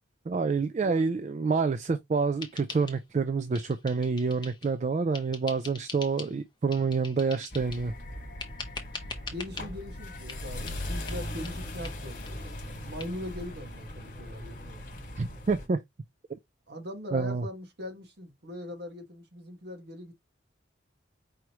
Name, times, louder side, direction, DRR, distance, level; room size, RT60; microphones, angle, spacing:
voice 1, 0.3-7.9 15.2-15.8 17.1-17.5, right 4 dB, 35° right, 0.3 m, -28 dB
voice 2, 0.8-1.2 9.3-14.8 16.7-20.1, left 1 dB, 55° right, 1.3 m, -41 dB
sound 1, 2.4-3.3 3.5-4.7 5.1-6.3 6.7-7.9 8.4-9.7 10.3-10.4 10.7-10.8 11.1-11.2 11.4-11.5 11.8-12.0 12.2-12.3 12.6-12.7 13.0-13.1, left 4 dB, 25° left, 0.8 m, -42 dB
sound 2, 7.5-15.7, left 1 dB, 40° left, 1.6 m, -39 dB
4.8 x 3.1 x 2.9 m
head